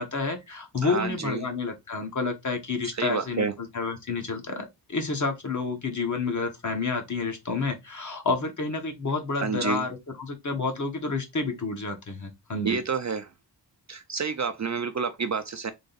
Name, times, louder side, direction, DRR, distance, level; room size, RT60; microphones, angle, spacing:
voice 1, 0.0-12.8, left 4 dB, 40° left, 1.2 m, -30 dB
voice 2, 0.8-1.5 2.8-3.5 9.3-9.8 12.6-13.3 13.9-15.7, right 5 dB, 40° right, 0.5 m, -29 dB
3.7 x 3.4 x 3.9 m
wide cardioid pair, 130°, 44 cm